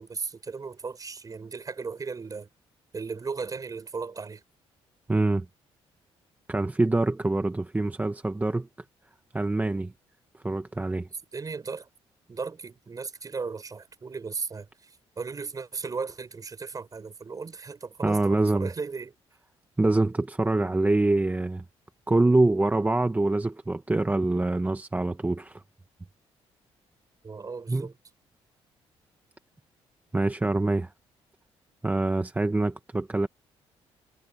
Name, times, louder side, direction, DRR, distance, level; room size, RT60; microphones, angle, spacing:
voice 1, 0.0-2.5 2.9-4.4 11.3-11.9 12.3-19.1 27.2-27.9, right 4 dB, 35° right, 6.5 m, -36 dB
voice 2, 5.1-5.4 6.5-8.7 9.3-9.9 10.4-11.1 18.0-18.7 19.8-21.6 22.1-25.6 27.7-27.9 30.1-30.9 31.8-33.3, right 2 dB, 15° right, 1.3 m, -25 dB
cardioid pair, 85°, 11 cm